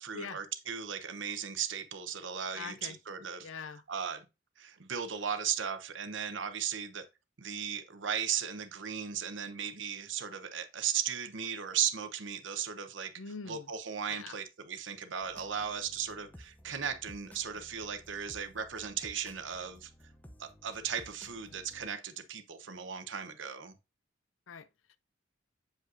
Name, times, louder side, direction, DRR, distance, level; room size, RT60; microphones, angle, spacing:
voice 1, 0.0-3.5 3.9-4.3 4.6-7.0 7.4-13.1 13.5-19.9 20.4-23.7, right 8 dB, 70° right, 0.9 m, -36 dB
voice 2, 2.5-3.0 3.4-3.8 13.2-13.7 14.1-14.4 24.5-24.7, left 5 dB, 90° left, 0.6 m, -43 dB
sound 1, 15.2-21.9, equal, 10° left, 0.6 m, -56 dB
7.7 x 5.1 x 2.6 m
head